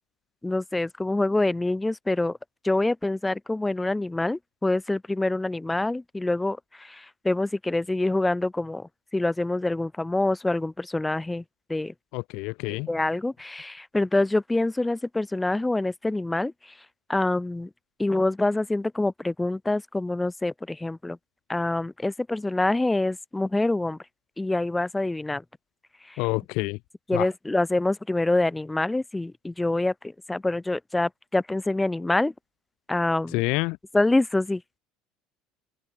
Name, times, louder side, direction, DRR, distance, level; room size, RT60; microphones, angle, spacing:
voice 1, 0.4-2.4 2.6-11.4 11.7-11.9 12.9-16.5 17.1-17.7 18.0-21.2 21.5-24.0 24.4-25.4 26.1-26.2 27.1-32.3 32.9-33.4 33.9-34.6, left 2 dB, 10° left, 7.0 m, -26 dB
voice 2, 12.1-12.9 26.2-26.8 27.1-27.3 33.3-33.8, left 26 dB, 70° left, 2.3 m, -27 dB
open air
cardioid pair, 140°, 0 cm